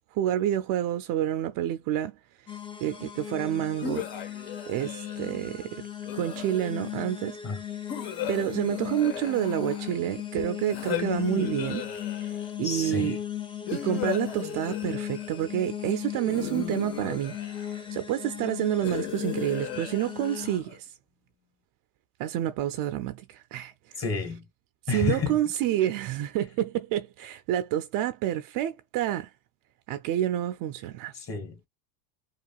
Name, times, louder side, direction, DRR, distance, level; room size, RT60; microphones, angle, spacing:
voice 1, 0.1-2.2 2.8-4.1 4.7-5.8 6.1-7.4 8.3-11.8 12.6-13.2 13.7-20.9 22.2-24.0 24.9-29.3 29.9-31.3, right 12 dB, 45° right, 0.5 m, -29 dB
sound 1, 2.5-20.6, left 10 dB, 10° left, 0.5 m, -37 dB
sound 2, 3.8-5.3 6.0-7.0 7.9-10.1 10.7-12.5 13.7-15.4 16.2-17.9 18.8-20.8, left 9 dB, 60° left, 1.5 m, -37 dB
voice 2, 12.6-13.2 24.0-24.4 24.9-25.4 31.1-31.7, left 5 dB, 30° left, 1.5 m, -30 dB
4.8 x 2.4 x 2.3 m
hypercardioid pair, 100°, 49 cm